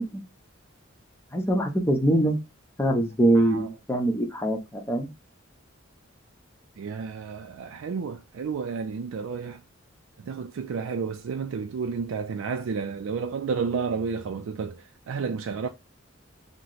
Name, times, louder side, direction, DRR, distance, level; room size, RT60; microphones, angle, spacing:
voice 1, 1.3-2.4 2.8-5.1, right 1 dB, 15° left, 0.7 m, -23 dB
voice 2, 3.3-3.7 6.8-9.6 10.2-15.7, right 5 dB, 75° right, 0.4 m, -31 dB
2.9 x 2.1 x 3.8 m
head